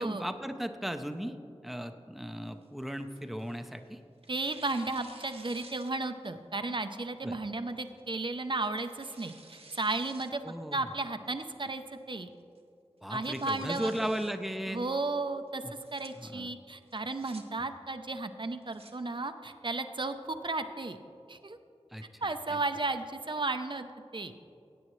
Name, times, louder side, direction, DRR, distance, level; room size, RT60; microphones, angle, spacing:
voice 1, 0.0-1.3 1.6-4.0 7.2-7.4 10.4-10.9 13.0-14.9 15.6-15.7 16.2-16.5 21.9-22.6, equal, ahead, 7 dB, 0.6 m, -36 dB
Tearing, 2.4-3.8 4.2-6.3 6.7-6.8 7.7-8.0 8.5-10.3 10.7-10.8 11.4-11.8 12.2-12.3 12.6-12.7 13.0-14.3 15.6-16.1 16.9-17.4 18.4-18.9, right 2 dB, 65° right, 1.0 m, -54 dB
voice 2, 4.3-10.4 10.7-12.3 13.1-13.9 14.7-15.6 15.9-21.0 21.3-21.6 22.2-23.9 24.1-24.3, right 3 dB, 50° right, 9 dB, 0.6 m, -34 dB
16.0 x 8.6 x 3.1 m, 2.5 s
wide cardioid pair, 55°, 11 cm